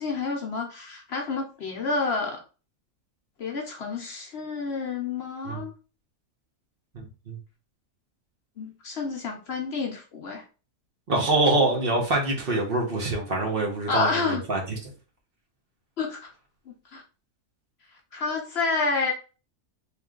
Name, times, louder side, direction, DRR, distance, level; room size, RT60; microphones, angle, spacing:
voice 1, 0.0-2.4 3.4-5.7 8.6-10.4 13.9-14.4 16.0-16.2 16.9-17.0 18.1-19.1, left 4 dB, 55° left, 0.9 m, -29 dB
voice 2, 6.9-7.4 11.1-14.6, right 2 dB, 45° right, 1.1 m, -25 dB
3.2 x 3.0 x 3.7 m
omnidirectional pair, 1.4 m